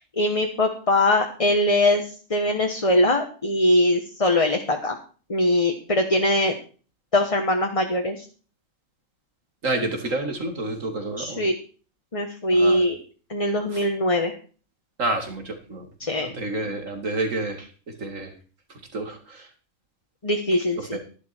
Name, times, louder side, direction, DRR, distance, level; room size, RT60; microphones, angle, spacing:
voice 1, 0.0-5.0 5.3-6.5 7.1-8.2 11.2-11.5 12.1-13.0 13.3-14.3 16.0-16.3 16.6-16.7 20.2-21.0, left 1 dB, 25° left, 3 dB, 1.4 m, -22 dB
voice 2, 9.6-11.4 12.5-12.9 13.6-13.9 15.0-15.9 16.2-18.3 18.7-19.5 20.8-21.0, right 2 dB, 85° right, 5 dB, 2.8 m, -29 dB
12.0 x 11.5 x 4.5 m, 0.38 s
omnidirectional pair, 1.3 m